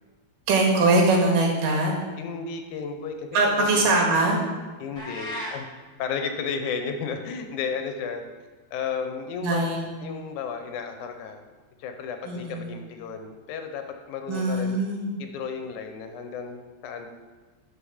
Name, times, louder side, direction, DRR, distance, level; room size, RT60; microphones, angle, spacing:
voice 1, 0.5-1.9 3.3-4.4 9.4-9.9 12.2-12.7 14.3-15.2, right 2 dB, 85° right, 0 dB, 3.3 m, -22 dB
voice 2, 2.2-4.0 4.8-5.7 6.0-8.2 8.7-9.7 10.0-11.4 11.8-14.8 15.2-17.1, left 6 dB, 75° left, 6 dB, 2.2 m, -33 dB
sound 1, 5.0-5.6, equal, 15° left, 1.9 m, -34 dB
11.5 x 5.3 x 5.0 m, 1.3 s
omnidirectional pair, 3.7 m